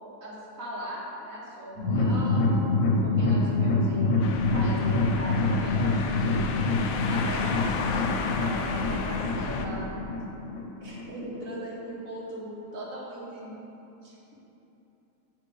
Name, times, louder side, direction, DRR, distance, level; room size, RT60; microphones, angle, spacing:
voice 1, 0.2-2.5 3.0-6.5 7.1-9.9 10.8-13.6 14.0-14.3, equal, 55° right, -6 dB, 1.8 m, -39 dB
sound 1, 1.8-11.0 11.4-11.5 11.9-12.0, left 3 dB, 55° left, 1.2 m, -26 dB
sound 2, 4.2-9.7, left 4 dB, 70° left, 0.9 m, -33 dB
9.1 x 6.0 x 3.4 m, 3.0 s
omnidirectional pair, 1.8 m